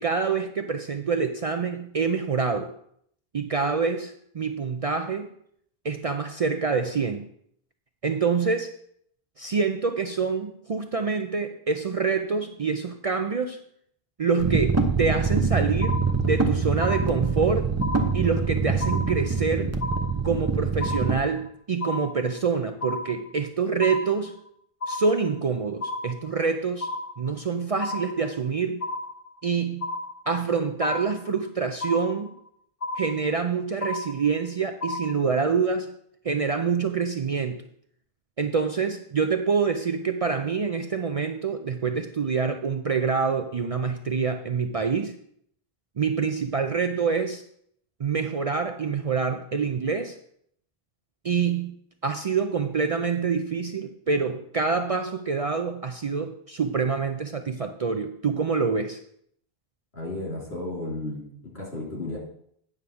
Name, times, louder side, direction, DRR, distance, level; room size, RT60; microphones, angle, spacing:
voice 1, 0.0-2.7 3.3-5.3 5.8-7.2 8.0-8.7 9.4-13.6 14.2-16.0 16.3-17.7 18.1-19.7 20.2-24.4 24.9-28.8 29.4-29.9 30.3-32.3 33.0-35.9 36.2-37.6 38.4-45.1 46.0-47.4 48.0-50.2 51.2-51.8 52.0-59.0, right 5 dB, 50° right, 6 dB, 0.4 m, -26 dB
sound 1, 14.4-21.2, right 4 dB, 15° right, 0.7 m, -25 dB
sound 2, 15.8-16.5 16.8-17.5 17.8-18.5 18.8-19.5 19.8-20.5 20.8-21.5 21.8-22.5 22.8-23.5 23.8-24.5 24.8-25.5 25.8-26.5 26.8-27.5 27.8-28.5 28.8-29.5 29.8-30.5 30.8-31.5 31.8-32.5 32.8-33.5 33.8-34.5 34.8-35.5, left 2 dB, 40° left, 0.6 m, -33 dB
voice 2, 59.9-62.2, left 2 dB, 75° left, -3 dB, 3.2 m, -33 dB
9.3 x 3.5 x 6.9 m, 0.68 s
omnidirectional pair, 1.0 m